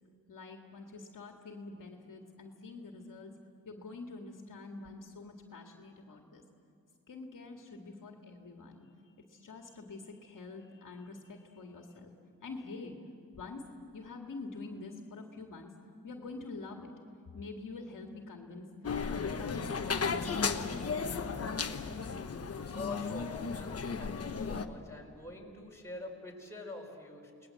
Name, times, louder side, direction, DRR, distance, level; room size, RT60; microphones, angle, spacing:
voice 1, 0.3-3.3 3.6-6.4 7.1-8.9 9.3-12.1 12.4-12.9 13.4-13.7 13.9-15.7 16.0-16.9 17.3-18.7 19.1-21.5, left 3 dB, 60° left, 2 dB, 2.1 m, -46 dB
sound 1, 18.8-24.7, left 5 dB, 40° left, 1.2 m, -35 dB
voice 2, 22.6-27.3, left 2 dB, 5° left, -1 dB, 4.5 m, -45 dB
29.5 x 20.0 x 7.7 m, 2.4 s
wide cardioid pair, 120°, 37 cm